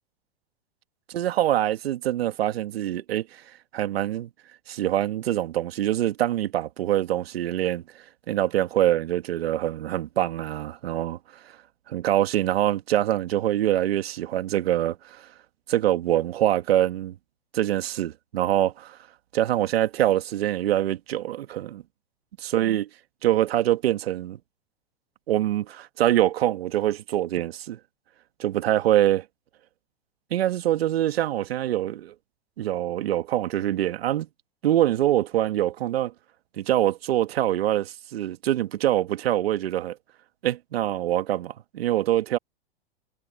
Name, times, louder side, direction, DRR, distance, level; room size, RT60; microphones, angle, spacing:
voice 1, 1.1-3.3 3.7-4.3 4.7-7.8 8.3-11.2 11.9-15.3 15.7-17.1 17.5-18.7 19.3-21.8 22.4-22.9 23.2-24.4 25.3-27.8 28.4-29.2 30.3-32.1 32.6-34.3 34.6-36.1 36.6-40.0 40.4-42.4, right 13 dB, 70° right, 2.1 m, -24 dB
hypercardioid pair, 110°, 31 cm